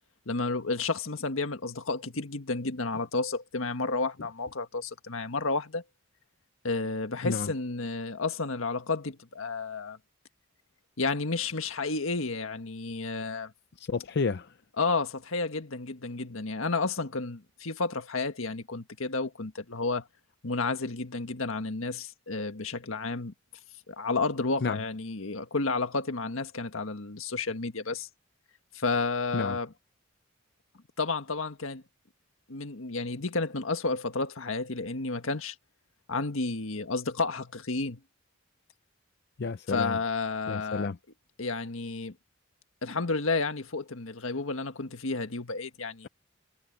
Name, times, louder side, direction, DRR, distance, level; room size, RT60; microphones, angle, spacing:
voice 1, 0.2-5.8 6.6-10.0 11.0-13.5 14.8-20.0 20.4-23.3 23.9-28.1 28.7-29.7 31.0-31.8 32.5-35.5 36.1-38.0 39.7-40.9 41.4-42.1 42.8-46.1, left 3 dB, 80° left, 1.6 m, -31 dB
voice 2, 13.8-14.5 24.6-24.8 29.3-29.6 39.4-40.0 40.5-41.0, left 4 dB, 55° left, 0.5 m, -30 dB
head